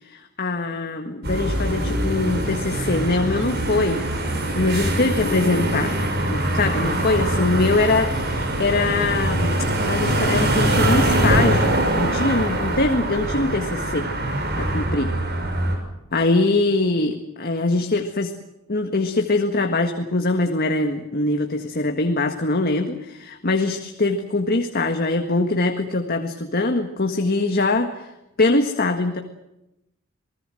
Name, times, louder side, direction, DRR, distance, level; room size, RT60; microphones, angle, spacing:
voice 1, 0.1-4.0 4.6-6.0 6.3-14.1 14.6-15.2 16.1-18.3 18.7-28.1 28.4-29.2, left 2 dB, 50° left, 5 dB, 1.7 m, -23 dB
sound 1, 1.2-15.8, right 1 dB, 55° right, 6.4 m, -23 dB
28.0 x 19.5 x 7.8 m, 0.90 s
head